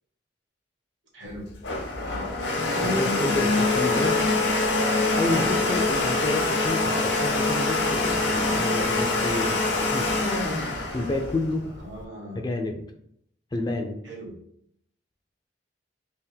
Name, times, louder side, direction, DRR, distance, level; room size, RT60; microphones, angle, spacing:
voice 1, 1.1-1.5 2.0-2.3 5.2-5.6 11.8-12.4 14.0-14.4, equal, 80° right, -2 dB, 1.3 m, -40 dB
Domestic sounds home sounds, 1.3-12.0, left 2 dB, 75° left, 0.8 m, -24 dB
voice 2, 2.8-4.2 5.2-9.6 9.9-10.1 10.9-11.6 12.3-12.8 13.5-14.0, left 2 dB, 25° left, 4 dB, 0.4 m, -29 dB
3.4 x 2.5 x 3.4 m, 0.70 s
head